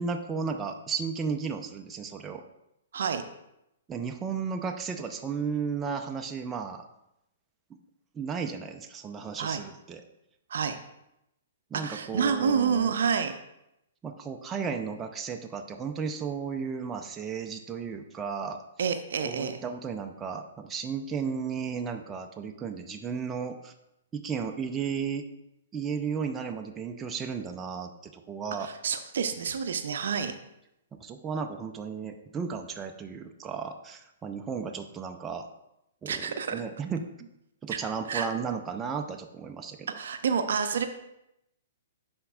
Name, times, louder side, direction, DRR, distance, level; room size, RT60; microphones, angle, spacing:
voice 1, 0.0-2.4 3.9-6.9 7.7-7.8 8.1-10.0 11.7-12.9 14.0-18.6 19.2-23.7 24.1-25.3 25.7-28.7 30.9-35.5 36.0-37.3 37.6-39.9, right 6 dB, 15° right, 4 dB, 0.5 m, -34 dB
voice 2, 11.8-13.3 18.8-19.6 28.6-30.3 36.1-36.6 37.7-37.8 38.1-38.3 40.0-40.9, right 6 dB, 65° right, 8 dB, 0.5 m, -28 dB
11.0 x 4.4 x 2.4 m, 0.85 s
hypercardioid pair, 125°, 0 cm